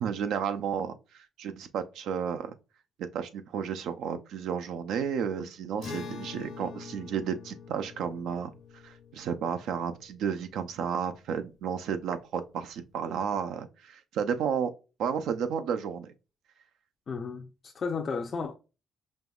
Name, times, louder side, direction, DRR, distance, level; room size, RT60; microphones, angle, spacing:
voice 1, 0.0-2.5 3.1-8.5 8.8-14.7 15.0-16.1, right 7 dB, 80° right, 0.5 m, -32 dB
Acoustic guitar, 5.8-11.3, left 5 dB, 80° left, 1.0 m, -45 dB
voice 2, 17.1-18.5, left 5 dB, 45° left, 0.5 m, -33 dB
5.3 x 3.0 x 2.3 m
cardioid pair, 90°, 0 cm